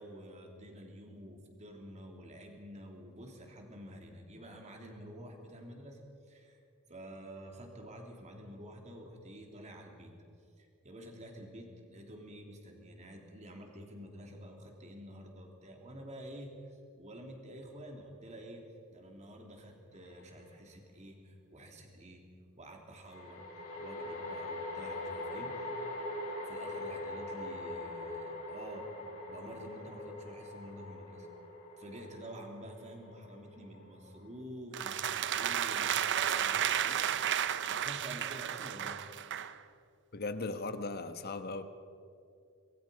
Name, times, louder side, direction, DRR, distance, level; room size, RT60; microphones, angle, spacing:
voice 1, 0.0-6.0 6.3-6.6 6.9-10.1 10.6-18.6 18.9-22.3 22.5-23.5 23.8-25.6 26.5-28.9 29.3-31.3 31.8-39.0, equal, 35° right, 1 dB, 3.3 m, -49 dB
sound 1, 20.1-20.2 23.0-34.4, left 2 dB, 75° left, 7.7 m, -42 dB
sound 2, 34.7-39.6, right 10 dB, 55° right, 0.7 m, -32 dB
voice 2, 40.1-41.6, left 3 dB, 45° left, 9 dB, 1.2 m, -37 dB
25.5 x 21.5 x 5.2 m, 2.5 s
head